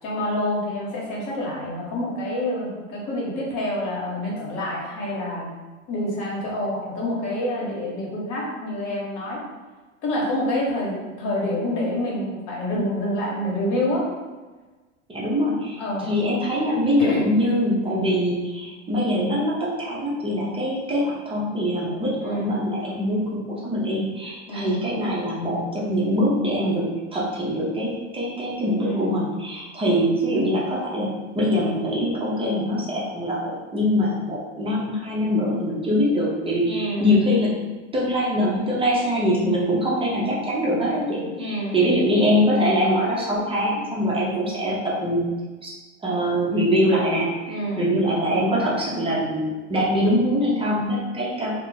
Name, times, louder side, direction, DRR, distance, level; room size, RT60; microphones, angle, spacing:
voice 1, 0.0-5.5 5.9-9.4 10.0-14.1 15.8-16.1 17.0-17.3 18.6-18.8 22.2-22.6 24.5-24.8 28.7-29.4 36.6-37.2 41.3-42.0 47.5-48.0, left 1 dB, 50° left, -3 dB, 1.2 m, -27 dB
voice 2, 15.1-26.9 27.1-31.1 31.3-37.5 37.9-45.3 45.6-45.7 46.0-51.5, equal, 15° right, -6 dB, 0.7 m, -23 dB
2.4 x 2.3 x 3.8 m, 1.3 s
hypercardioid pair, 95°, 39 cm